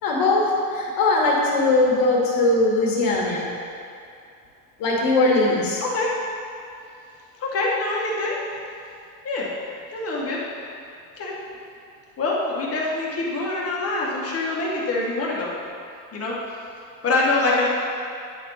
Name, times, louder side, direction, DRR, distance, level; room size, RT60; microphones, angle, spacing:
voice 1, 0.0-3.5 4.8-5.8, left 2 dB, 50° left, -2 dB, 1.8 m, -20 dB
voice 2, 5.4-6.1 7.4-8.3 9.2-9.5 9.9-10.4 11.2-11.3 12.2-15.5 16.1-16.4 17.0-17.7, left 2 dB, 30° left, -4 dB, 1.7 m, -25 dB
10.0 x 4.4 x 4.0 m, 2.5 s
supercardioid pair, 105°, 44 cm